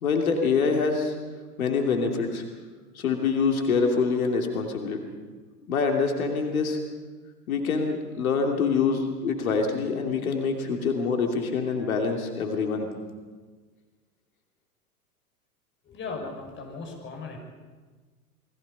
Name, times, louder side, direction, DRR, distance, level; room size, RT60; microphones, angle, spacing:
voice 1, 0.0-1.1 1.6-2.4 2.9-5.0 5.7-6.8 7.5-12.9, left 5 dB, 65° left, 3 dB, 3.0 m, -25 dB
voice 2, 15.9-17.4, left 4 dB, 25° left, 2 dB, 5.8 m, -37 dB
28.0 x 21.5 x 5.5 m, 1.4 s
figure-of-eight pair, 95°, 46 cm